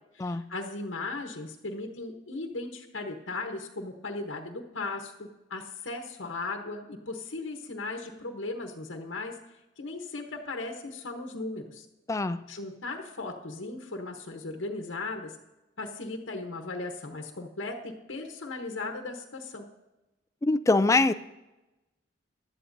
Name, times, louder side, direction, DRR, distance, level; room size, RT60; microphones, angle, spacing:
voice 1, 0.1-9.4 9.8-11.8 12.5-15.3 15.8-19.7, left 3 dB, 80° left, 1.1 m, -37 dB
voice 2, 12.1-12.4 20.4-21.1, left 3 dB, 15° left, 0.3 m, -23 dB
16.5 x 11.5 x 2.7 m
head